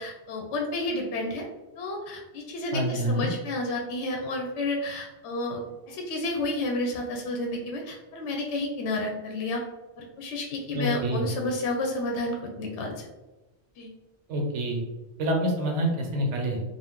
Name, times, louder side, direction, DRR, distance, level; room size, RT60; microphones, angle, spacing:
voice 1, 0.0-1.4 1.8-9.6 10.0-13.1 13.8-13.9, left 2 dB, 75° left, 1 dB, 0.8 m, -31 dB
voice 2, 2.7-3.3 10.7-11.3 14.3-14.8 15.2-16.6, right 1 dB, 85° right, 2 dB, 1.0 m, -27 dB
2.5 x 2.3 x 3.5 m, 1.1 s
omnidirectional pair, 1.2 m